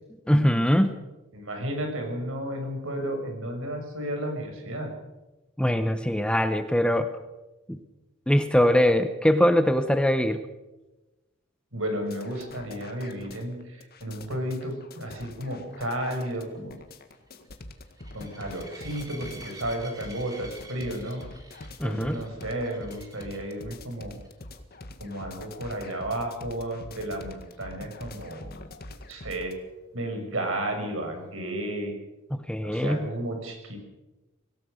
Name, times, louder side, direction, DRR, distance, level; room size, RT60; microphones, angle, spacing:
voice 1, 0.3-0.9 5.6-7.1 7.7-7.8 8.3-10.4 21.8-22.2 32.3-33.1, equal, 5° left, 9 dB, 1.0 m, -22 dB
voice 2, 1.3-4.9 11.7-16.8 18.1-21.2 21.8-24.2 25.0-28.5 29.1-29.6 29.9-31.9 32.6-33.8, right 1 dB, 70° right, 4 dB, 6.3 m, -33 dB
sound 1, 12.1-29.5, left 2 dB, 50° left, 1.9 m, -45 dB
sound 2, 15.6-23.5 24.1-24.4 24.7-24.8 25.2-25.3 28.9-29.0, right 2 dB, 20° right, 4.0 m, -49 dB
25.0 x 17.5 x 6.6 m, 1.1 s
head